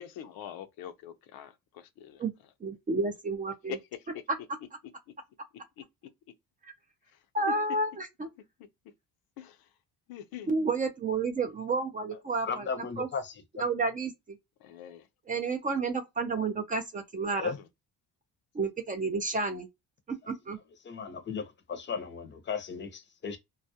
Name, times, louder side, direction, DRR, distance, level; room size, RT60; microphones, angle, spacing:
voice 1, 0.0-2.2 3.7-4.2 5.8-5.9 7.1-7.5 9.4-9.7 10.1-10.5 14.6-15.1 17.6-17.7, left 9 dB, 85° left, 0.5 m, -43 dB
voice 2, 2.6-3.8 6.6-6.7 7.3-8.3 10.5-12.7 13.0-13.1 13.6-14.4 15.3-17.5 18.5-19.7 20.1-20.6, right 3 dB, 25° right, 0.4 m, -31 dB
voice 3, 12.4-13.6 17.4-17.6 20.8-23.4, left 5 dB, 30° left, 0.6 m, -36 dB
2.3 x 2.0 x 2.6 m
cardioid pair, 120°, 35 cm